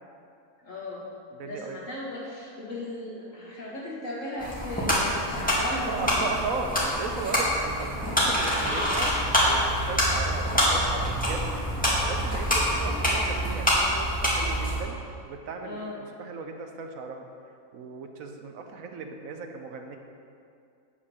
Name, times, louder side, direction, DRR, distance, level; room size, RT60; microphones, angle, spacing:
voice 1, 0.6-1.0 1.4-6.1 15.6-16.0, left 1 dB, 60° left, -5 dB, 2.2 m, -36 dB
voice 2, 1.4-1.8 5.7-11.5 12.0-15.0 15.3-17.3 17.7-20.0, right 4 dB, 70° right, 4 dB, 1.2 m, -36 dB
sound 1, 4.4-14.8, equal, 5° left, 1.9 m, -26 dB
8.6 x 5.6 x 6.4 m, 2.4 s
omnidirectional pair, 1.5 m